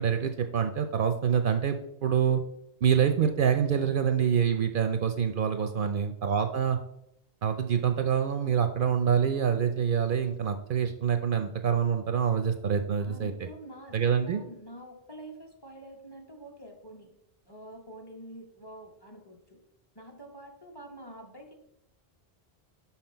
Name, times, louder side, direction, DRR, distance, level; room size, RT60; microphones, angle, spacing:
voice 1, 0.0-2.4 2.8-6.8 7.4-13.5 13.9-14.4, right 7 dB, 60° right, 7 dB, 0.7 m, -26 dB
voice 2, 5.6-5.9 13.0-17.1 17.5-19.6 19.9-21.5, right 1 dB, 25° left, 2 dB, 1.1 m, -47 dB
5.8 x 5.8 x 4.4 m, 0.78 s
omnidirectional pair, 1.0 m